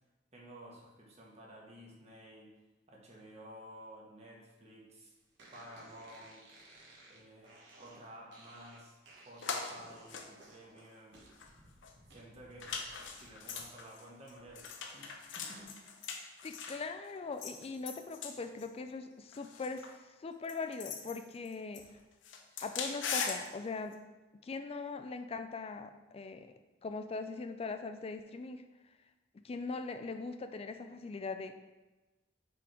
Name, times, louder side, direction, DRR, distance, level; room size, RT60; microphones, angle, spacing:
voice 1, 0.3-2.6 2.9-5.1 5.5-6.5 7.1-9.0 9.2-11.3 12.1-12.8 13.1-15.8, right 1 dB, 35° right, -3 dB, 1.3 m, -53 dB
sound 1, 5.4-13.7 14.0-15.7, right 2 dB, 75° right, 1.4 m, -59 dB
sound 2, 9.4-9.8 10.1-11.0 11.3-11.5 11.8-11.9 12.6-16.9 17.4-18.7 19.3-19.9 20.5-22.0 22.2-23.5 23.9-24.0, left 5 dB, 90° left, 0.7 m, -41 dB
voice 2, 16.4-21.8 22.6-24.0 24.4-26.5 26.8-28.6 29.3-31.6, left 4 dB, 35° left, 8 dB, 0.4 m, -41 dB
6.0 x 3.8 x 4.4 m, 1.1 s
head